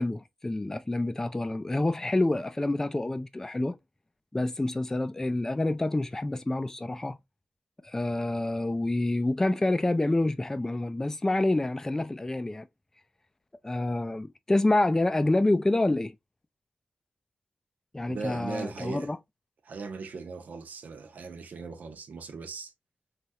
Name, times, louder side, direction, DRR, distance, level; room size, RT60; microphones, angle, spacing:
voice 1, 0.0-3.8 4.3-7.2 7.8-12.7 13.6-16.1 17.9-19.2, left 2 dB, 15° left, 0.3 m, -27 dB
voice 2, 18.1-19.1 19.6-22.7, right 4 dB, 75° right, 0.6 m, -38 dB
3.1 x 2.4 x 2.7 m
cardioid pair, 75°, 3 cm